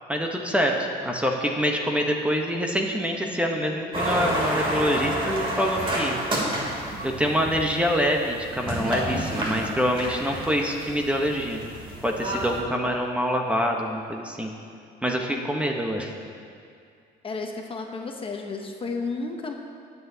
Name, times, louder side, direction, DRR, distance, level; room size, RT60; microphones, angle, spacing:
voice 1, 0.1-0.7 1.0-6.2 7.0-11.6 12.0-14.5 15.0-16.1, equal, 5° right, 1 dB, 1.0 m, -25 dB
sound 1, 3.9-12.6, right 1 dB, 35° right, 2.9 m, -29 dB
voice 2, 17.2-19.5, left 3 dB, 30° left, 2 dB, 1.0 m, -32 dB
18.5 x 8.1 x 2.8 m, 2.4 s
cardioid pair, 110°, 17 cm